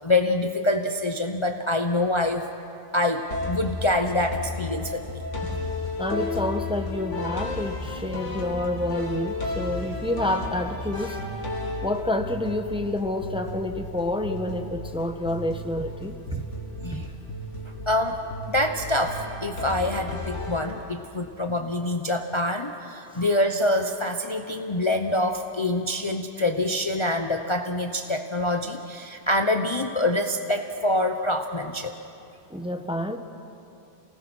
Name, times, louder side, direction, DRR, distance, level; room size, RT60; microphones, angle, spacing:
voice 1, 0.0-2.5 2.9-5.2 16.8-17.1 17.9-18.2 18.5-31.9, left 1 dB, 30° left, 5 dB, 0.8 m, -25 dB
sound 1, 3.3-21.1, left 2 dB, 80° left, 2.6 m, -34 dB
voice 2, 6.0-11.2 11.8-16.4 16.9-17.1 23.1-23.3 32.5-33.2, left 1 dB, 5° right, 6 dB, 0.9 m, -28 dB
28.0 x 19.0 x 6.2 m, 2.7 s
omnidirectional pair, 1.2 m